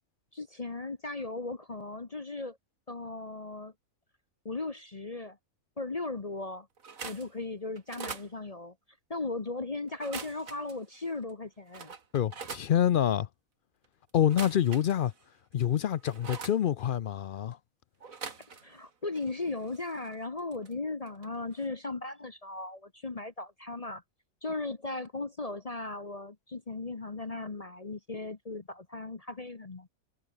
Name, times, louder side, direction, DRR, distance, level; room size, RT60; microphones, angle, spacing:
voice 1, 0.3-2.6 2.9-3.7 4.4-5.4 5.8-6.7 7.0-8.7 9.1-11.9 18.6-24.0 24.4-29.9, left 3 dB, 30° left, 1.0 m, -37 dB
sound 1, 6.8-7.3 7.8-8.3 9.9-10.7 11.3-11.4 11.7-12.7 14.2-15.2 15.6-16.6 18.0-18.9 19.1-20.7 21.1-21.3 21.5-21.7, right 5 dB, 65° right, 2.4 m, -43 dB
voice 2, 12.1-13.3 14.1-15.1 15.5-17.6, left 10 dB, 70° left, 0.4 m, -26 dB
omnidirectional pair, 1.5 m